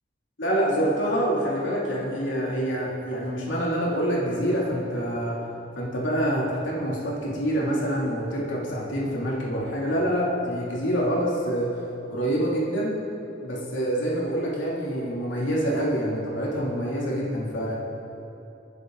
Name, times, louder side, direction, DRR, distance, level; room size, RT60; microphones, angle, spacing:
voice 1, 0.4-5.4 5.8-11.7 12.1-13.0 13.4-17.7, equal, 90° left, -5 dB, 2.9 m, -26 dB
25.0 x 10.0 x 4.0 m, 2.9 s
head